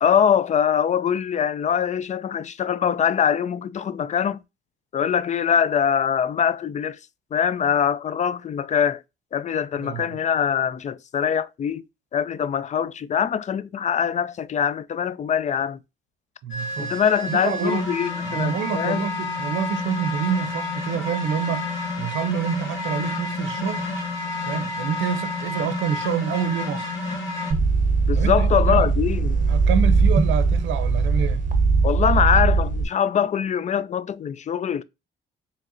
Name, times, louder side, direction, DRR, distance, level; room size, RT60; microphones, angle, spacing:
voice 1, 0.0-4.4 4.9-7.0 7.3-9.0 9.3-11.8 12.1-15.8 16.8-19.0 28.1-29.4 31.8-34.8, left 8 dB, 35° left, 0.4 m, -23 dB
voice 2, 9.8-10.2 16.4-17.0 17.3-17.9 18.2-23.9 24.5-26.9 28.2-28.9 29.5-31.5, right 8 dB, 70° right, 0.6 m, -27 dB
sound 1, 16.5-27.5, left 3 dB, 70° left, 1.6 m, -30 dB
sound 2, 27.5-32.8, right 4 dB, 45° right, 0.8 m, -20 dB
4.7 x 3.3 x 2.5 m
cardioid pair, 90°, 20 cm